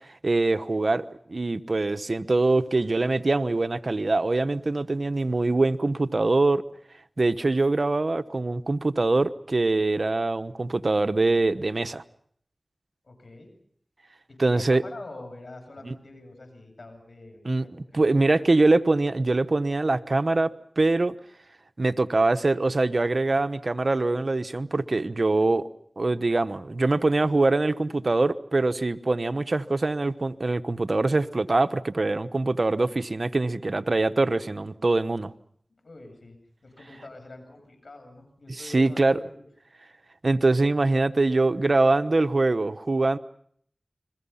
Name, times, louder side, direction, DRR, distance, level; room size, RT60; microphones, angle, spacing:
voice 1, 0.2-6.6 7.2-12.0 14.4-14.8 15.8-15.9 17.4-17.6 17.9-20.5 20.8-21.1 21.8-25.6 26.0-35.3 38.6-39.2 40.2-43.2, right 2 dB, 60° right, 10 dB, 1.0 m, -23 dB
voice 2, 13.0-13.5 14.3-18.4 35.8-36.4 36.6-39.4, left 2 dB, 80° left, 5 dB, 7.8 m, -45 dB
30.0 x 22.5 x 5.7 m, 0.65 s
wide cardioid pair, 40°, 0 cm